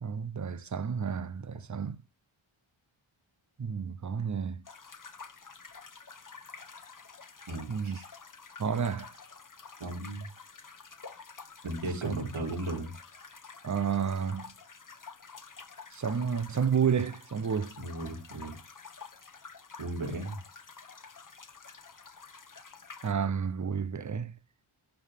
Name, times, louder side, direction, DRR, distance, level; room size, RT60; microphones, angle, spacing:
voice 1, 0.0-2.0 3.6-4.6 7.7-8.0 8.6-9.1 12.0-12.1 13.6-14.5 15.9-17.7 23.0-24.3, right 6 dB, 35° right, 0.7 m, -31 dB
sound 1, 4.6-23.1, left 5 dB, 40° left, 1.1 m, -49 dB
voice 2, 7.5-8.0 9.8-10.3 11.6-12.9 17.8-18.6 19.8-20.4, right 2 dB, 75° right, 3.5 m, -36 dB
11.5 x 5.5 x 3.5 m
wide cardioid pair, 85°, 49 cm